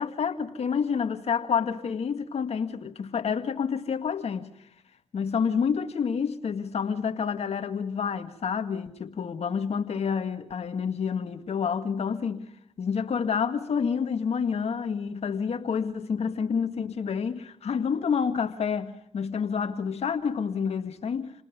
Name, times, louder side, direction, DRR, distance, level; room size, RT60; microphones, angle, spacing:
voice 1, 0.0-4.5 5.1-12.5 12.8-21.3, left 6 dB, 65° left, 1.9 m, -28 dB
27.5 x 19.5 x 5.2 m
cardioid pair, 60°, 12 cm